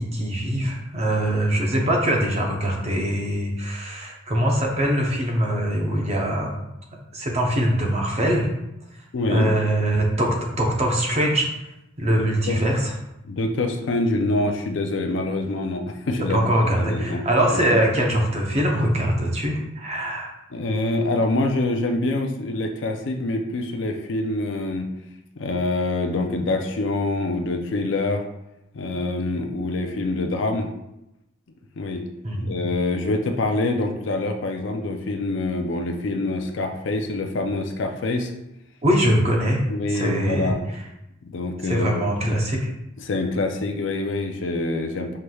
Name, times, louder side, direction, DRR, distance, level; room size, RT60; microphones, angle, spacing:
voice 1, 0.0-6.6 7.1-8.5 9.3-11.5 12.0-12.9 16.2-20.3 32.2-32.5 38.8-39.6 39.9-40.5 41.6-42.6, right 1 dB, 30° right, 0 dB, 0.7 m, -22 dB
voice 2, 9.1-9.5 12.1-12.2 12.5-12.6 13.2-16.4 16.8-17.2 17.5-17.8 20.5-24.9 25.4-28.2 28.7-30.7 31.8-32.0 32.4-38.3 39.7-40.6 41.2-41.9 43.0-45.2, left 2 dB, 65° left, 4 dB, 0.5 m, -25 dB
5.7 x 3.2 x 2.3 m, 0.87 s
head